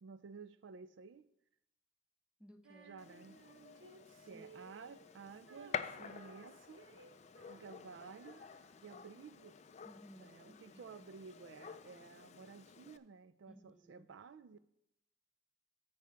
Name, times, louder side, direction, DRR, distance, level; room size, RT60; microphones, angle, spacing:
voice 1, 0.0-1.3 2.8-3.4 4.2-6.8 7.5-8.4 8.8-9.6 10.2-14.6, right 5 dB, 65° right, 0.4 m, -54 dB
voice 2, 2.4-2.9 4.3-4.4 9.8-10.8 13.5-14.1, equal, 5° right, 0.6 m, -59 dB
Female singing, 2.6-9.1, right 3 dB, 85° right, 0.8 m, -60 dB
Gunshot gunfire, 3.0-13.0, left 6 dB, 35° left, 0.4 m, -50 dB
9.4 x 4.7 x 6.8 m
head